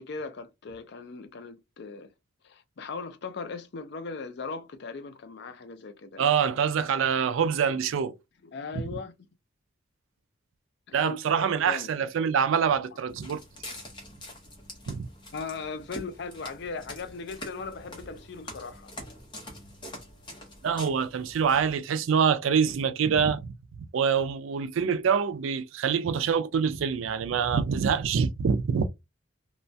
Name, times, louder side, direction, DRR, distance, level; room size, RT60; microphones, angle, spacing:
voice 1, 0.0-2.1 2.4-6.3 8.4-9.3 11.0-12.0 15.3-18.9, left 4 dB, 55° left, 0.4 m, -38 dB
voice 2, 6.2-8.1 10.9-13.4 14.9-15.1 20.6-28.9, right 6 dB, 75° right, 0.3 m, -25 dB
Walk footsteps, 13.1-21.8, left 1 dB, 20° left, 0.7 m, -45 dB
3.0 x 2.2 x 2.6 m
head